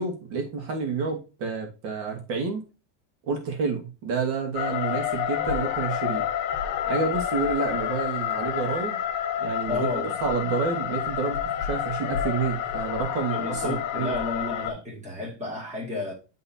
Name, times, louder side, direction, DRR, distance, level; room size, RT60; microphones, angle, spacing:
voice 1, 0.0-2.6 3.3-6.3 6.9-9.0 9.4-9.9 10.2-14.2, right 5 dB, 65° right, 2.1 m, -29 dB
sound 1, 4.5-14.7, left 10 dB, 55° left, 1.4 m, -29 dB
voice 2, 9.7-10.2 13.3-16.1, left 2 dB, 15° right, 2.6 m, -31 dB
10.5 x 4.0 x 2.8 m
cardioid pair, 170°, 49 cm